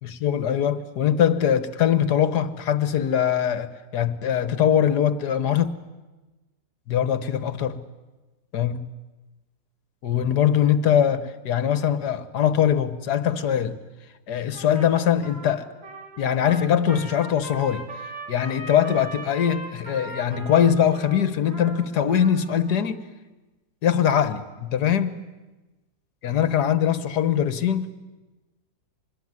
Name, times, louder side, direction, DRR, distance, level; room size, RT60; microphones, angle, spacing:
voice 1, 0.0-5.7 6.9-7.8 8.5-8.9 10.0-13.8 14.3-15.6 16.2-17.8 18.3-23.0 23.8-25.2 26.2-28.0, left 9 dB, 65° left, 1.7 m, -22 dB
Trumpet, 14.5-22.8, right 1 dB, 45° right, 4.1 m, -40 dB
25.0 x 21.0 x 9.6 m
omnidirectional pair, 2.0 m